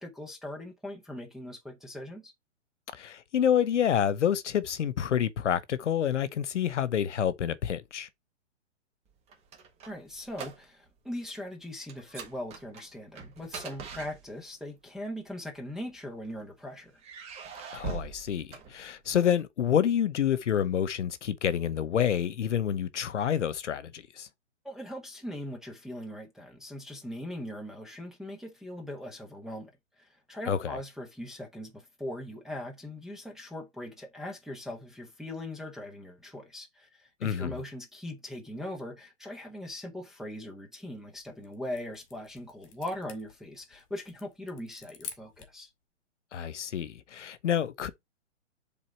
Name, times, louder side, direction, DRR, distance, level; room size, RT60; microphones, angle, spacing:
voice 1, 0.0-2.3 9.9-16.9 24.6-29.7 30.0-45.7, left 1 dB, ahead, 0.6 m, -40 dB
voice 2, 2.9-8.1 17.7-24.3 30.5-30.8 37.2-37.6 46.3-47.9, left 9 dB, 70° left, 1.0 m, -28 dB
sound 1, 9.1-11.0 11.2-11.5 11.9-14.7 15.6-16.4 17.0-19.3, right 5 dB, 15° right, 1.4 m, -43 dB
sound 2, 41.0-45.6, left 7 dB, 40° left, 2.1 m, -49 dB
7.5 x 3.9 x 4.3 m
hypercardioid pair, 145°, 37 cm